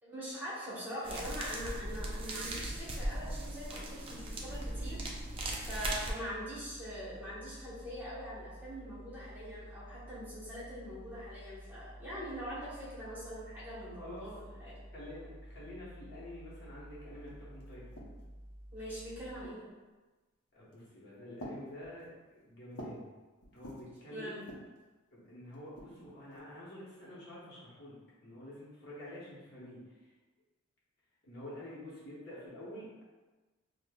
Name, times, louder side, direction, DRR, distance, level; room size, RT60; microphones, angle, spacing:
voice 1, 0.0-14.8 18.7-19.7 24.1-24.4, equal, 10° right, -10 dB, 1.0 m, -43 dB
sound 1, 1.0-6.1, right 1 dB, 25° right, 0.4 m, -38 dB
sound 2, 4.0-19.5, equal, 25° left, 1.0 m, -51 dB
voice 2, 14.0-14.3 14.9-18.0 20.5-22.1 22.4-23.1 23.5-24.5 25.1-29.8 31.2-33.0, left 1 dB, 50° left, -7 dB, 0.9 m, -48 dB
sound 3, 16.9-17.0 17.3-18.4 19.2-19.7 20.6-20.9 21.4-23.1 23.4-24.0 24.4-24.8 25.5-26.5, equal, 85° left, 0.7 m, -50 dB
5.0 x 2.1 x 2.2 m, 1.2 s
head